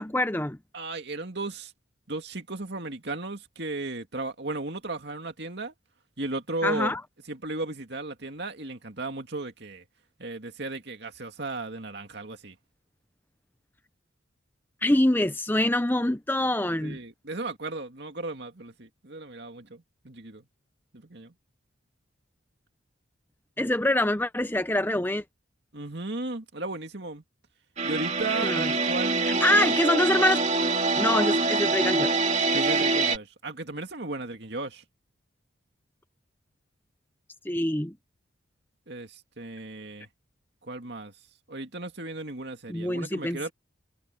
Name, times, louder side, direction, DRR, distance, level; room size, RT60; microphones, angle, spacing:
voice 1, 0.0-0.6 6.6-7.0 14.8-17.0 23.6-25.2 28.4-28.7 29.2-30.4 31.0-32.3 37.4-38.0 42.7-43.5, left 1 dB, 10° left, 0.7 m, -25 dB
voice 2, 0.7-1.7 2.1-5.7 6.2-6.9 7.3-9.8 10.2-12.5 16.8-20.4 20.9-21.3 25.7-27.2 27.8-29.8 32.5-34.8 38.9-40.1 40.6-41.1 41.5-43.5, right 2 dB, 55° right, 2.5 m, -35 dB
sound 1, 27.8-33.2, right 3 dB, 35° right, 2.4 m, -25 dB
head